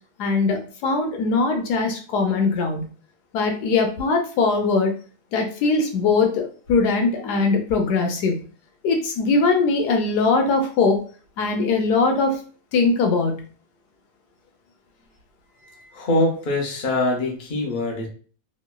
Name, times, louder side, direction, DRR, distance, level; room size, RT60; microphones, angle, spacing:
voice 1, 0.2-2.9 3.3-4.9 5.3-8.5 8.8-11.0 11.4-12.4 12.7-13.5, left 4 dB, 85° left, 3 dB, 1.2 m, -21 dB
voice 2, 15.6-18.1, left 2 dB, 40° left, -1 dB, 0.8 m, -24 dB
3.0 x 2.6 x 2.2 m, 0.39 s
omnidirectional pair, 1.7 m